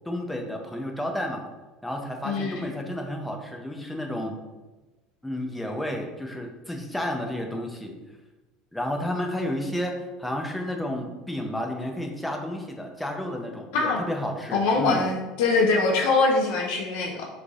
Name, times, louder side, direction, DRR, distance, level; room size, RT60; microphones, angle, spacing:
voice 1, 0.1-1.4 1.8-4.4 5.2-7.9 8.7-15.0, left 1 dB, 5° left, 2 dB, 0.6 m, -31 dB
voice 2, 2.2-2.7 13.7-14.0 14.5-17.2, left 3 dB, 70° left, -1 dB, 0.6 m, -23 dB
6.2 x 3.3 x 2.4 m, 1.1 s
cardioid pair, 150°, 0 cm